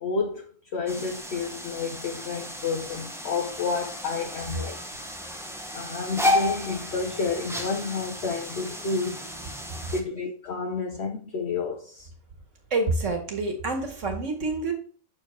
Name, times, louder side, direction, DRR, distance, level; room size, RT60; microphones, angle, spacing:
voice 1, 0.0-0.4 0.7-4.8 5.7-9.2 9.9-12.1, left 4 dB, 55° left, 1.0 m, -30 dB
sound 1, 0.9-10.0, left 1 dB, 5° right, 0.6 m, -32 dB
voice 2, 12.7-14.7, right 3 dB, 65° right, 1.9 m, -28 dB
6.4 x 4.7 x 4.4 m
omnidirectional pair, 1.4 m